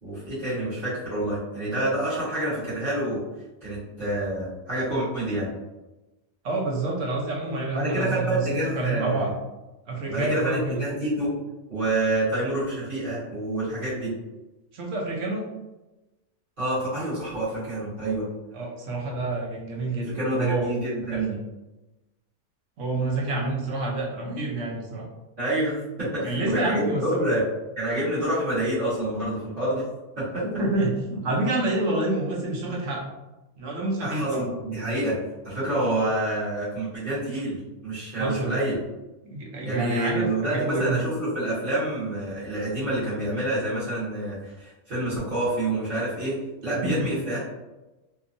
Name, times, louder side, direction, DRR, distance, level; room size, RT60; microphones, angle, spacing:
voice 1, 0.0-3.2 3.6-5.5 7.7-9.3 10.1-11.3 11.7-14.1 16.6-18.2 20.1-21.4 25.4-27.4 27.8-29.8 30.2-30.4 34.0-35.2 35.4-38.8 39.6-46.4 46.6-47.4, right 1 dB, 45° right, -13 dB, 1.3 m, -27 dB
voice 2, 6.4-9.3 9.9-10.9 14.7-15.4 18.5-20.7 21.1-21.2 22.8-25.1 26.2-27.3 30.6-33.1 33.6-34.5 38.1-38.6 39.2-41.1 46.8-47.1, right 2 dB, 90° right, -2 dB, 1.0 m, -28 dB
2.9 x 2.3 x 2.5 m, 1.0 s
omnidirectional pair, 1.2 m